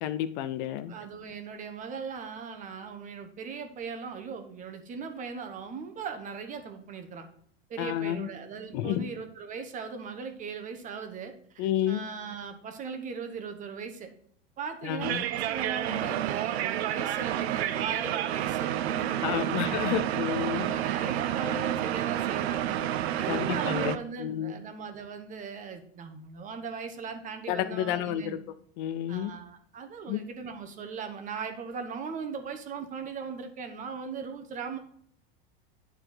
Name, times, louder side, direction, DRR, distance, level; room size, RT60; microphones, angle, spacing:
voice 1, 0.0-0.9 7.8-8.3 8.7-9.1 11.6-12.0 14.8-15.2 19.2-20.7 23.3-24.6 27.5-28.4 28.8-29.3 30.1-30.2, left 11 dB, 50° left, 0.5 m, -30 dB
voice 2, 0.9-7.2 7.7-14.1 14.6-19.8 20.5-22.8 23.2-28.4 29.1-34.8, right 5 dB, 25° right, 1.0 m, -39 dB
sound 1, 15.0-24.0, right 12 dB, 85° right, 0.7 m, -30 dB
9.8 x 4.5 x 3.8 m
supercardioid pair, 150°, 31 cm